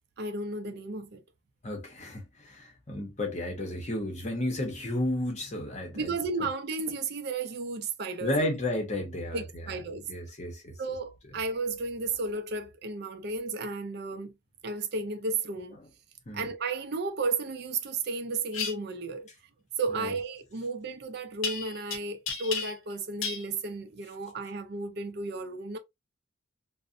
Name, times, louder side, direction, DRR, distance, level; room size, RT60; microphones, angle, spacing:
voice 1, 0.2-1.2 5.9-8.3 9.3-10.1 10.8-14.3 14.6-15.8 16.3-19.3 19.8-25.8, right 3 dB, 50° right, 0.4 m, -33 dB
voice 2, 1.6-6.1 6.4-6.5 8.2-9.7 10.1-10.8 15.8-15.9 16.3-16.5 19.9-20.1, left 1 dB, 35° left, 0.7 m, -33 dB
sound 1, 18.5-18.7 21.4-22.0 22.3-22.9 23.2-23.4, left 5 dB, 80° left, 0.6 m, -32 dB
2.5 x 2.0 x 2.5 m
head